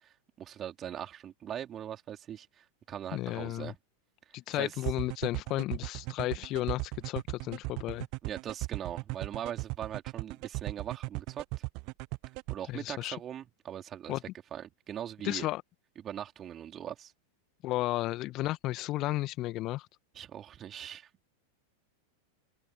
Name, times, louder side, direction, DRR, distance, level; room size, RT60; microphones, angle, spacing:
voice 1, 0.0-3.8 4.5-4.8 8.2-11.4 12.5-14.1 14.5-15.5 16.0-17.1 20.1-21.1, right 10 dB, 25° right, 4.3 m, -41 dB
voice 2, 3.1-3.7 4.3-8.1 12.7-13.2 14.1-14.2 15.2-15.6 17.6-19.9, left 17 dB, 35° left, 1.8 m, -33 dB
sound 1, 4.9-12.6, right 28 dB, 45° right, 0.9 m, -36 dB
open air
figure-of-eight pair, 90°, 0 cm